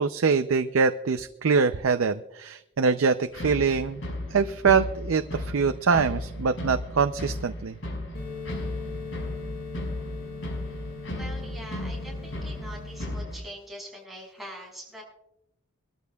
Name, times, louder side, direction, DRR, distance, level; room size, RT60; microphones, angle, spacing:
voice 1, 0.0-4.0 4.3-7.7, right 5 dB, 75° right, 9 dB, 0.5 m, -24 dB
sound 1, 3.3-13.4, left 1 dB, 65° left, 5.6 m, -35 dB
sound 2, 8.1-13.1, left 4 dB, 45° left, 5.7 m, -40 dB
voice 2, 11.1-15.0, equal, ahead, -3 dB, 6.2 m, -43 dB
24.5 x 13.5 x 2.3 m, 0.84 s
head